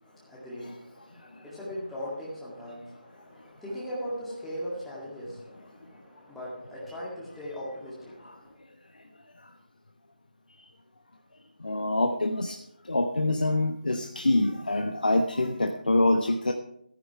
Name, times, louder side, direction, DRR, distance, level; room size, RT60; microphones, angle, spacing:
voice 1, 0.0-8.6, equal, ahead, 2.0 m, -39 dB
voice 2, 11.6-12.6 12.9-16.5, left 2 dB, 60° left, 1.0 m, -25 dB
14.0 x 10.0 x 4.7 m
figure-of-eight pair, 155°, 5 cm